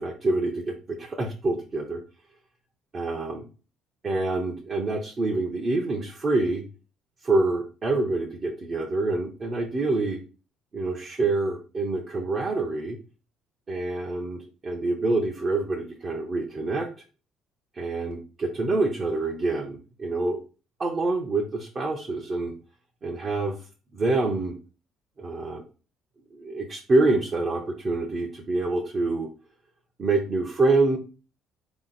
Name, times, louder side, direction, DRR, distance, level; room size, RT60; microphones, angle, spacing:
voice 1, 0.0-2.0 2.9-3.5 4.0-6.6 7.2-10.2 10.7-13.0 13.7-16.9 17.7-20.4 20.8-22.5 23.0-23.6 23.9-24.6 25.2-25.6 26.3-29.3 30.0-31.0, right 2 dB, 30° right, 0 dB, 0.8 m, -26 dB
4.3 x 3.0 x 4.0 m, 0.36 s
cardioid pair, 135°, 0 cm